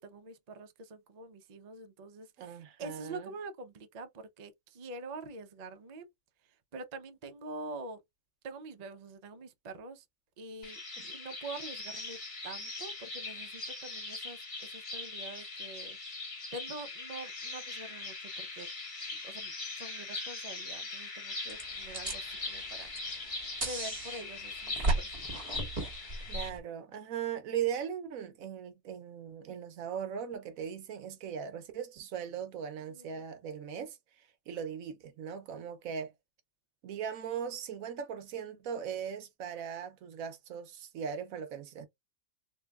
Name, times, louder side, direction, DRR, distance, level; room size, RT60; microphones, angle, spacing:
voice 1, 0.0-6.1 6.7-8.0 8.4-10.1 10.4-10.8 11.1-12.2 12.4-16.0 16.5-18.7 19.2-23.3 23.6-25.3 32.9-33.2, right 2 dB, 40° right, 0.6 m, -45 dB
voice 2, 2.4-3.3 26.3-36.1 36.8-41.9, right 8 dB, 80° right, 1.2 m, -39 dB
sound 1, 10.6-26.5, left 3 dB, 70° left, 2.4 m, -41 dB
sound 2, 21.5-26.6, right 2 dB, 25° right, 1.6 m, -36 dB
3.8 x 2.7 x 2.3 m
omnidirectional pair, 1.4 m